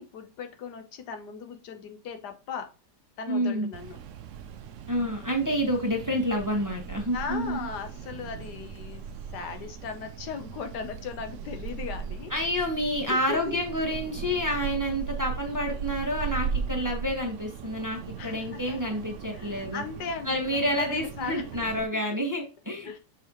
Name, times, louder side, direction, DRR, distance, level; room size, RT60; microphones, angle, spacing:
voice 1, 0.0-2.7 3.2-4.0 7.1-9.0 9.3-12.3 13.1-13.6 18.2-19.0 19.3-21.4 21.9-22.0 22.8-23.0, left 6 dB, 75° left, 1.4 m, -37 dB
voice 2, 3.3-3.7 4.9-7.7 12.3-19.8 20.2-23.0, equal, 10° right, 1.1 m, -29 dB
sound 1, 3.7-21.9, right 6 dB, 70° right, 0.7 m, -38 dB
6.8 x 5.0 x 2.9 m
omnidirectional pair, 1.9 m